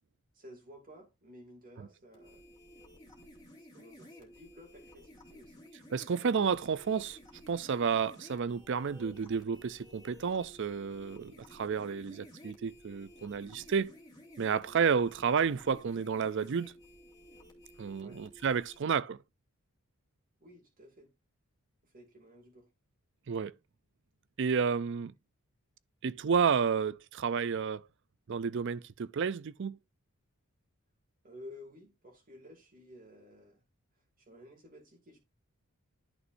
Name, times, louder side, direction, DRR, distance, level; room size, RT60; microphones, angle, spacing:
voice 1, 0.3-2.4 3.6-5.6 18.0-18.2 20.4-21.1 21.8-22.7 31.2-33.6 33.9-35.2, left 1 dB, 40° right, 2.6 m, -54 dB
sound 1, 2.1-18.8, left 1 dB, 15° left, 2.6 m, -55 dB
voice 2, 5.9-7.2 7.5-13.9 14.4-16.7 17.8-19.2 23.3-23.5 24.4-25.1 26.0-27.8 28.3-29.8, right 6 dB, 55° right, 0.4 m, -31 dB
11.0 x 6.3 x 2.6 m
head